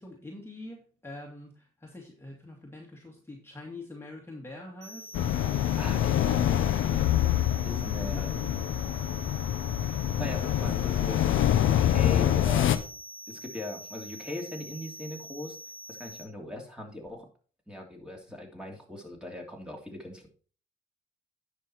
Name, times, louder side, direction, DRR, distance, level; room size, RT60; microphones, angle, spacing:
voice 1, 0.0-5.5 6.2-6.6 7.7-8.5 10.6-10.7, left 2 dB, 10° left, -1 dB, 2.2 m, -44 dB
sound 1, 4.8-16.2, right 1 dB, 55° right, 3.0 m, -45 dB
sound 2, 5.1-12.8, left 11 dB, 80° left, 0.9 m, -26 dB
voice 2, 5.5-7.1 7.6-8.3 10.2-11.2 11.6-12.8 13.3-15.6 16.0-17.3 17.7-20.3, left 1 dB, 5° right, 1 dB, 3.0 m, -40 dB
10.0 x 6.1 x 4.4 m, 0.41 s
cardioid pair, 90°, 20 cm